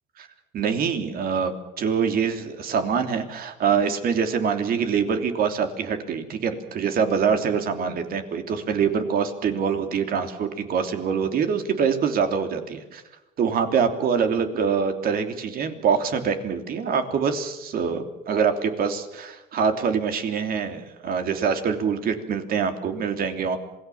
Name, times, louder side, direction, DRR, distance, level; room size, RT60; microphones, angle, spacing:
voice 1, 0.5-13.0 13.4-23.6, right 6 dB, 60° right, 7 dB, 3.1 m, -24 dB
26.5 x 19.0 x 7.2 m, 1.0 s
cardioid pair, 110°, 17 cm